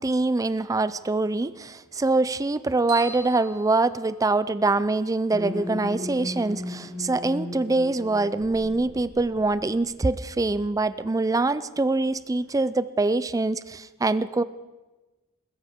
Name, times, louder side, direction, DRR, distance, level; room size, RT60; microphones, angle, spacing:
voice 1, 0.0-14.4, right 2 dB, 15° right, 15 dB, 0.4 m, -24 dB
sound 1, 2.9-4.7, right 4 dB, 75° right, 5.4 m, -41 dB
sound 2, 5.3-10.1, left 1 dB, 5° left, 3.5 m, -36 dB
21.0 x 15.5 x 3.6 m, 1.2 s
head